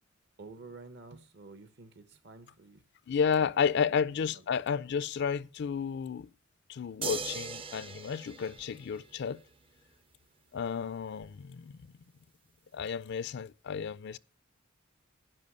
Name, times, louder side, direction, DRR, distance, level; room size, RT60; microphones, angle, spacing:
voice 1, 0.4-2.8 3.4-4.7, right 3 dB, 55° right, 1.0 m, -51 dB
voice 2, 3.1-6.3 6.7-9.4 10.5-11.8 12.7-14.2, left 6 dB, 55° left, 0.4 m, -32 dB
sound 1, 7.0-9.5 11.2-11.3, right 5 dB, 25° right, 0.5 m, -40 dB
10.5 x 5.6 x 6.6 m
head